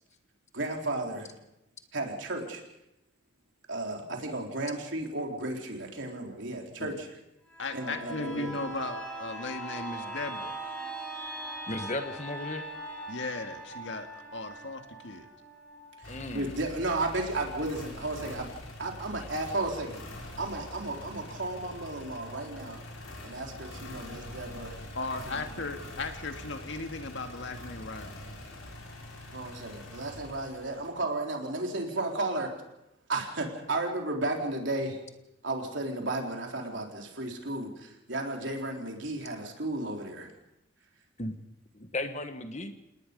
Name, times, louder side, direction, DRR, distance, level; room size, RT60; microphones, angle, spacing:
voice 1, 0.5-1.3 1.9-2.6 3.7-7.1 7.7-8.5 16.0-18.5 18.8-20.0 20.4-22.8 23.2-24.7 29.3-32.5 33.1-35.0 35.4-40.3, right 2 dB, 65° right, 1 dB, 4.0 m, -33 dB
sound 1, 7.5-17.0 17.4-17.5, right 1 dB, 5° left, 5.2 m, -41 dB
voice 2, 7.6-10.5 13.1-15.3 24.9-28.2, left 2 dB, 60° left, 6 dB, 2.1 m, -37 dB
voice 3, 11.7-12.7 16.1-16.5 19.2-19.3 41.2-41.3 41.7-42.7, left 2 dB, 35° left, 8 dB, 1.5 m, -35 dB
sound 2, 16.0-31.1, left 1 dB, 85° left, 6.0 m, -44 dB
28.5 x 19.0 x 5.4 m, 0.87 s
head